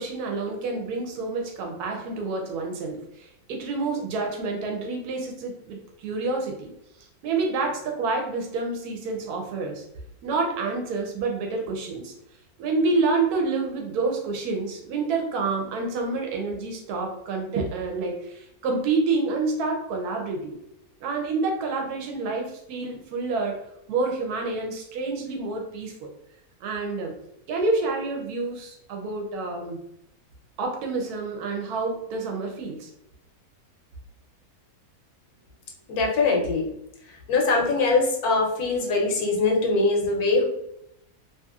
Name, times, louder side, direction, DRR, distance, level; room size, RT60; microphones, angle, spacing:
voice 1, 0.0-6.7 7.2-9.8 10.2-12.1 12.6-20.6 21.0-23.6 23.9-26.1 26.6-27.1 27.5-29.8 30.6-32.9, right 3 dB, 90° right, 2 dB, 1.1 m, -28 dB
voice 2, 35.9-36.6 37.3-40.4, left 3 dB, 85° left, 0 dB, 1.2 m, -22 dB
2.9 x 2.7 x 2.3 m, 0.79 s
omnidirectional pair, 1.6 m